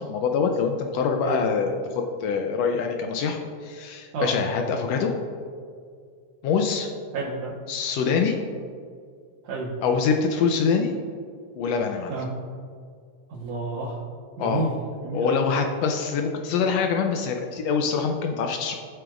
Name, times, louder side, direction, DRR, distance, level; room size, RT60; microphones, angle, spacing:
voice 1, 0.0-5.1 6.4-6.9 7.7-8.4 9.8-11.0 11.5-12.2 14.4-14.6 15.1-18.7, left 5 dB, 85° left, 4 dB, 1.5 m, -25 dB
voice 2, 7.1-7.5 9.4-9.7 12.1-12.3 13.3-14.0 14.4-14.8 15.0-15.5, right 3 dB, 85° right, -8 dB, 2.8 m, -30 dB
15.5 x 7.7 x 2.5 m, 2.2 s
omnidirectional pair, 3.5 m